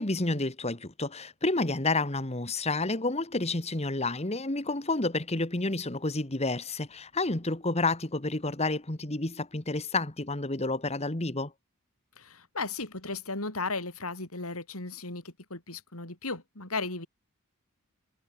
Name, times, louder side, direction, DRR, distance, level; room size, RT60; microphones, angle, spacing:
voice 1, 0.0-11.5, left 2 dB, 30° left, 1.8 m, -30 dB
voice 2, 12.2-17.1, left 3 dB, 75° left, 6.6 m, -35 dB
head